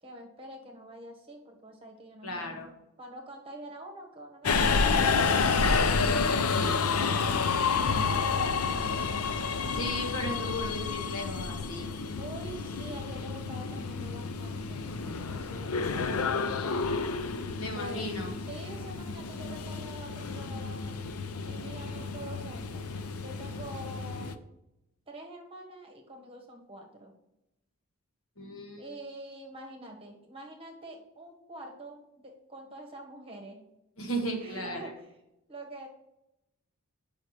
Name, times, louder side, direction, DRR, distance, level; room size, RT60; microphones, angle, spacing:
voice 1, 0.0-2.6 3.0-5.9 8.1-9.1 10.0-10.1 12.2-16.9 17.7-18.1 18.5-21.0 21.4-23.0 23.2-24.4 25.1-27.1 28.8-33.6 34.4-35.1 35.5-35.9, right 1 dB, 25° right, 1 dB, 1.4 m, -46 dB
voice 2, 2.2-2.7 6.6-7.4 9.7-11.9 17.6-18.4 28.4-28.9 34.0-34.9, equal, 70° left, 3 dB, 1.4 m, -36 dB
Subway metro underground, 4.4-24.3, left 5 dB, 85° left, 0.6 m, -30 dB
7.6 x 5.5 x 4.8 m, 0.87 s
head